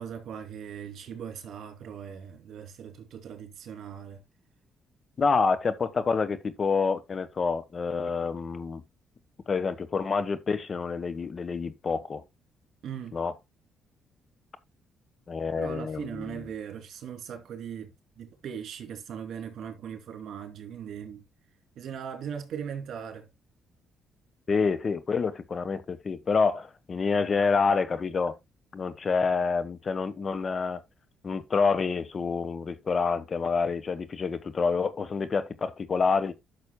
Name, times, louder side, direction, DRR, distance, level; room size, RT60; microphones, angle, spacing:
voice 1, 0.0-4.2 12.8-13.2 15.6-21.2 21.8-23.3, right 8 dB, 70° right, 2.7 m, -39 dB
voice 2, 5.2-8.8 9.5-12.2 13.1-13.4 15.3-16.5 24.5-28.4 28.7-30.8 31.2-36.3, left 5 dB, 40° left, 1.2 m, -27 dB
12.0 x 6.4 x 2.3 m
cardioid pair, 90°, 0 cm